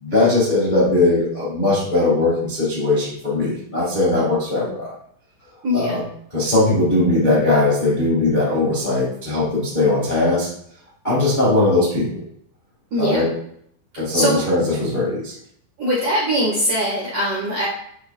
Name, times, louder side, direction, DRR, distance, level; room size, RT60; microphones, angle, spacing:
voice 1, 0.0-4.9 5.7-6.0 6.3-10.5 11.0-12.2 13.0-13.3 14.0-15.3, left 2 dB, 70° left, -7 dB, 0.4 m, -19 dB
voice 2, 5.6-6.0 12.9-13.2 14.1-14.4 15.8-17.6, equal, 50° right, -8 dB, 1.8 m, -21 dB
8.2 x 4.9 x 2.5 m, 0.69 s
omnidirectional pair, 5.7 m